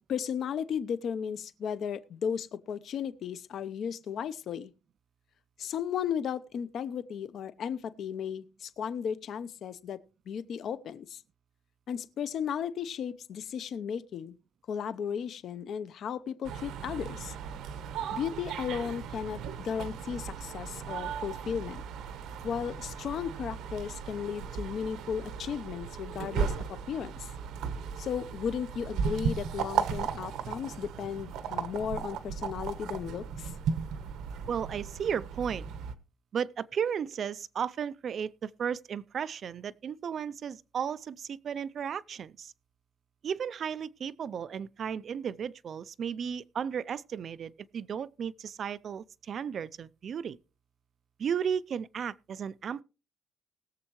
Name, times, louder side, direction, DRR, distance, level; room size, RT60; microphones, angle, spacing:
voice 1, 0.1-4.7 5.6-10.0 10.3-11.2 11.9-14.3 14.7-17.3 18.1-21.8 22.4-27.3 28.0-33.5, left 7 dB, 50° left, 0.7 m, -35 dB
sound 1, 16.4-35.9, right 7 dB, 80° right, 1.1 m, -36 dB
voice 2, 34.5-35.7 36.3-42.5 43.2-50.4 51.2-52.8, right 7 dB, 40° right, 0.4 m, -34 dB
20.5 x 7.4 x 3.1 m
cardioid pair, 165°, 0 cm